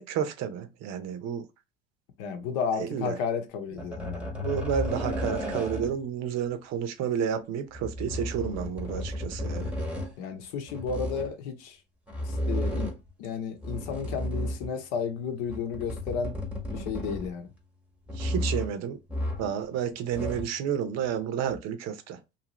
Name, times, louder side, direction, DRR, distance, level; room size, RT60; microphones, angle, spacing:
voice 1, 0.0-1.4 2.8-3.1 4.3-9.7 18.1-19.0 19.4-22.2, right 8 dB, 55° right, 0.7 m, -31 dB
voice 2, 2.2-4.3 8.9-9.0 10.2-11.8 12.2-12.9 13.2-16.4 16.7-17.5, left 6 dB, 70° left, 0.9 m, -33 dB
sound 1, 3.8-6.1 7.7-10.1 10.7-11.3 12.1-13.1 13.6-14.8 15.4-17.5 18.1-18.8 19.1-19.6 19.9-20.6 21.5-21.6, left 1 dB, 5° right, 0.8 m, -33 dB
2.7 x 2.5 x 2.9 m
supercardioid pair, 85°, 32 cm